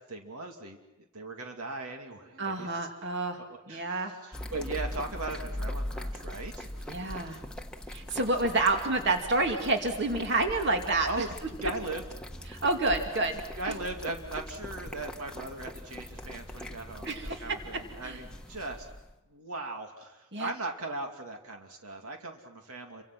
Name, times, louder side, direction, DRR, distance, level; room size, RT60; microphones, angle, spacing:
voice 1, 0.1-7.0 11.0-11.3 11.6-12.0 13.6-18.9 19.3-23.0, right 2 dB, 80° right, 3 dB, 2.5 m, -39 dB
voice 2, 2.4-3.4 3.7-4.1 6.9-7.4 7.9-11.2 12.5-13.4 13.7-13.8 17.0-17.6 18.0-18.2 20.3-20.5, right 2 dB, 50° right, 4 dB, 2.7 m, -28 dB
sound 1, 4.3-19.1, left 1 dB, 5° left, 1.2 m, -41 dB
29.5 x 25.0 x 6.1 m, 1.0 s
head